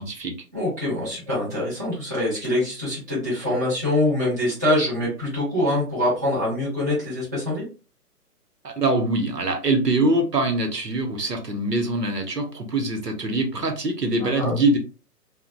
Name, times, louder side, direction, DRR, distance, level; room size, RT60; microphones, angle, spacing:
voice 1, 0.0-0.3 8.6-14.8, right 2 dB, 85° right, 5 dB, 0.9 m, -23 dB
voice 2, 0.5-7.7 14.2-14.5, left 1 dB, 10° right, -9 dB, 0.6 m, -24 dB
3.8 x 2.2 x 2.2 m, 0.34 s
figure-of-eight pair, 135°, 47 cm